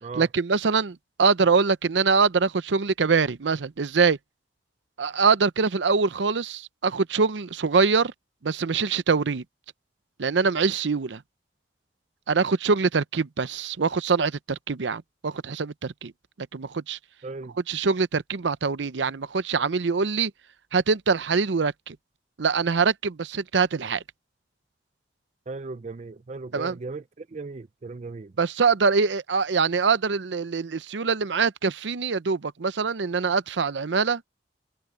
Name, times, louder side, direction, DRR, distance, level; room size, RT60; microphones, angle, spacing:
voice 1, 0.2-4.2 5.0-8.1 8.4-9.4 10.2-11.2 12.3-16.1 16.5-17.0 17.7-20.3 20.7-22.0 22.4-24.0 26.5-26.8 28.4-34.2, right 5 dB, 90° right, 0.6 m, -24 dB
voice 2, 17.2-17.6 25.5-28.3, right 3 dB, 40° right, 0.5 m, -37 dB
open air
head